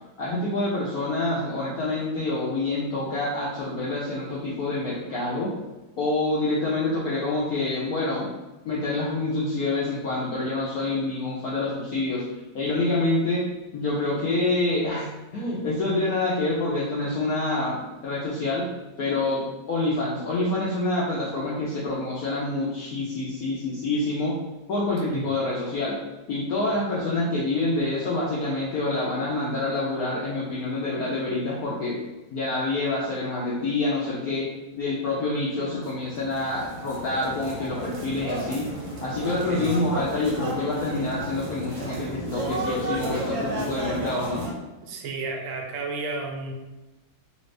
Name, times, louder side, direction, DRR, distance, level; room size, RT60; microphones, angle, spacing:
voice 1, 0.2-5.5 6.0-8.3 8.6-12.2 12.5-13.5 13.7-18.6 19.0-24.4 24.7-26.0 26.3-32.0 32.3-34.5 34.7-38.7 39.0-44.5, left 2 dB, 75° left, -6 dB, 0.8 m, -27 dB
sound 1, 35.8-44.5, right 1 dB, 65° right, 1.4 m, -32 dB
voice 2, 44.8-46.5, right 3 dB, 80° right, 1 dB, 1.4 m, -32 dB
3.3 x 2.7 x 3.2 m, 1.1 s
omnidirectional pair, 2.3 m